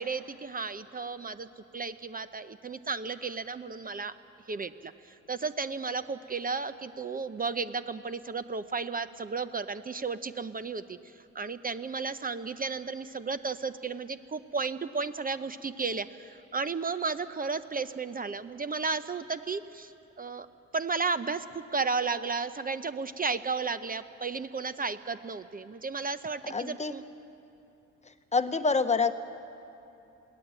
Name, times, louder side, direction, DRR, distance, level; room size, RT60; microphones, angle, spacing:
voice 1, 0.0-1.5 1.7-4.1 4.5-19.9 20.2-20.5 20.7-27.0, right 4 dB, 30° right, 11 dB, 0.7 m, -33 dB
voice 2, 26.5-26.9 28.3-29.1, left 4 dB, 25° left, 10 dB, 1.0 m, -26 dB
21.5 x 17.0 x 9.0 m, 2.8 s
cardioid pair, 90°, 30 cm